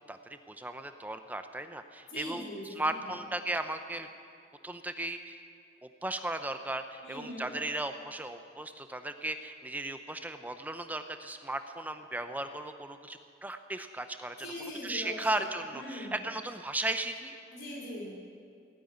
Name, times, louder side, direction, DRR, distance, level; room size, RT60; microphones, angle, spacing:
voice 1, 0.1-2.4 2.7-4.1 4.6-5.4 5.8-14.4 14.8-17.4, right 2 dB, 10° right, 8 dB, 0.6 m, -36 dB
voice 2, 2.1-3.0 7.0-7.5 14.4-16.1 17.5-18.1, left 1 dB, 70° left, -4 dB, 4.9 m, -41 dB
17.0 x 9.0 x 9.5 m, 2.3 s
head